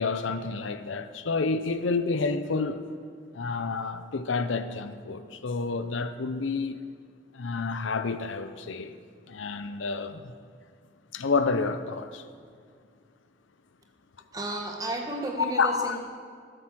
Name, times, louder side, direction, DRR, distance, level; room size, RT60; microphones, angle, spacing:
voice 1, 0.0-2.8 3.3-6.8 7.3-8.9 9.3-10.3 11.1-12.2 15.6-16.0, left 4 dB, 85° left, 0.6 m, -29 dB
voice 2, 14.3-16.0, right 2 dB, 20° right, 1.2 m, -33 dB
13.0 x 7.6 x 6.2 m
head